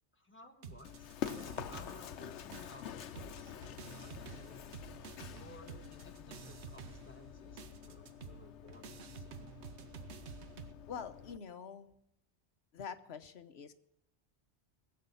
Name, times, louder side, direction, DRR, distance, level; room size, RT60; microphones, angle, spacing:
voice 1, 0.1-4.8 5.3-9.4, left 2 dB, 10° left, 3 dB, 1.3 m, -58 dB
sound 1, 0.6-2.3 2.5-10.7, right 6 dB, 75° right, 1.1 m, -50 dB
Run, 0.8-11.4, left 9 dB, 85° left, 1.0 m, -47 dB
voice 2, 10.9-11.9 12.7-13.7, left 7 dB, 70° left, 9 dB, 1.1 m, -45 dB
20.5 x 7.7 x 5.5 m, 0.80 s
omnidirectional pair, 1.2 m